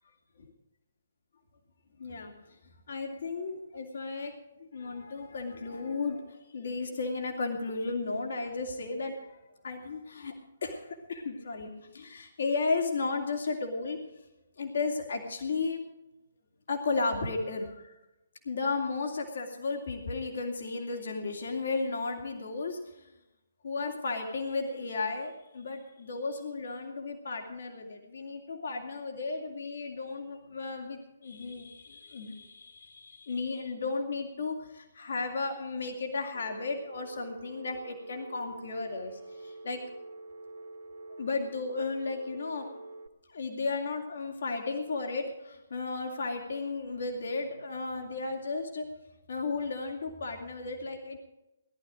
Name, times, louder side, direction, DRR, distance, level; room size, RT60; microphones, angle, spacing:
voice 1, 2.0-2.3 2.9-4.3 4.6-9.4 9.6-10.3 10.6-14.0 14.6-15.8 16.7-18.0 18.4-23.1 23.6-39.8 41.2-42.8 43.3-48.9 49.3-51.2, left 3 dB, 65° left, 2 dB, 2.7 m, -34 dB
Telephone, 36.3-43.1, right 2 dB, 65° right, 1.4 m, -46 dB
19.0 x 11.5 x 5.1 m, 0.95 s
figure-of-eight pair, 135°, 0 cm